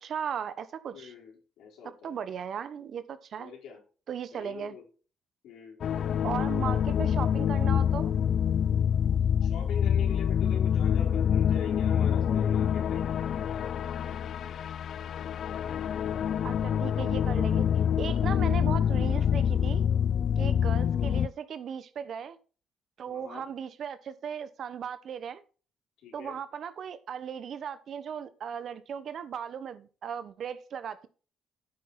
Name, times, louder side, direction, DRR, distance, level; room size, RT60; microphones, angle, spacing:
voice 1, 0.0-1.1 2.0-3.5 4.1-4.8 6.2-8.1 16.4-17.7 18.0-19.9 20.4-22.4 23.0-25.4 26.1-31.1, right 8 dB, 60° right, 1.0 m, -37 dB
voice 2, 0.9-2.2 3.4-3.8 4.3-4.9 5.4-5.8 9.4-14.7 14.9-15.6 23.1-23.4 26.0-26.4, left 7 dB, 80° left, 4.3 m, -44 dB
sound 1, 5.8-21.3, left 8 dB, 65° left, 0.4 m, -26 dB
9.3 x 8.1 x 4.3 m
cardioid pair, 90°, 0 cm